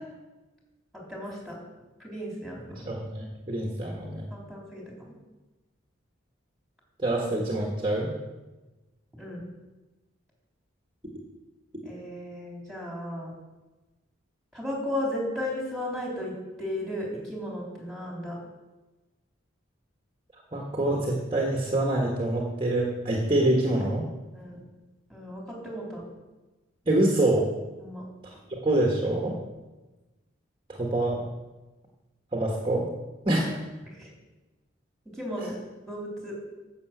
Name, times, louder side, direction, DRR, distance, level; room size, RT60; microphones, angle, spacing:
voice 1, 1.1-1.6 2.0-2.8 4.3-5.1 9.2-9.4 11.8-13.3 14.5-18.4 24.3-24.6 25.1-26.0 27.8-28.0 34.0-34.1 35.2-35.5 35.8-36.4, left 1 dB, ahead, -3 dB, 3.6 m, -35 dB
voice 2, 2.7-4.2 7.0-8.1 20.5-24.0 26.9-27.5 28.5-29.4 30.7-31.3 32.3-32.9 33.2-33.6, right 1 dB, 25° right, -2 dB, 1.5 m, -26 dB
11.0 x 7.0 x 7.9 m, 1.1 s
head